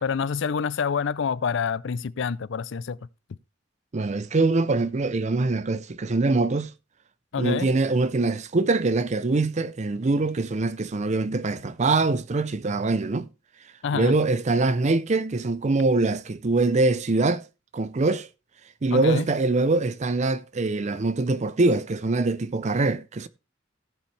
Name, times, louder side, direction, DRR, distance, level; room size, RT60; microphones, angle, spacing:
voice 1, 0.0-3.0 7.3-7.7 13.8-14.2 18.9-19.3, left 6 dB, 65° left, 0.4 m, -27 dB
voice 2, 3.9-6.7 7.4-13.3 13.9-17.4 17.7-18.3 18.8-23.3, right 3 dB, 35° right, 0.5 m, -23 dB
15.5 x 7.1 x 3.3 m
head